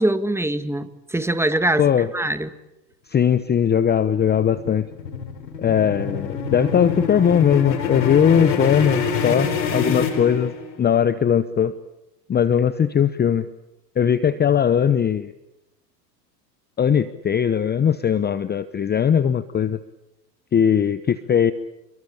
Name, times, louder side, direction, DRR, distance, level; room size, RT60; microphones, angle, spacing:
voice 1, 0.0-2.5, right 1 dB, 5° right, 11 dB, 1.8 m, -23 dB
voice 2, 3.1-4.9 5.6-10.5 10.8-11.7 12.3-13.5 14.0-15.3 16.8-19.8 20.5-21.5, left 8 dB, 20° left, 15 dB, 0.9 m, -19 dB
sound 1, 4.1-10.9, left 5 dB, 90° left, 4.8 m, -26 dB
28.0 x 23.5 x 8.6 m, 0.90 s
hypercardioid pair, 105°, 50 cm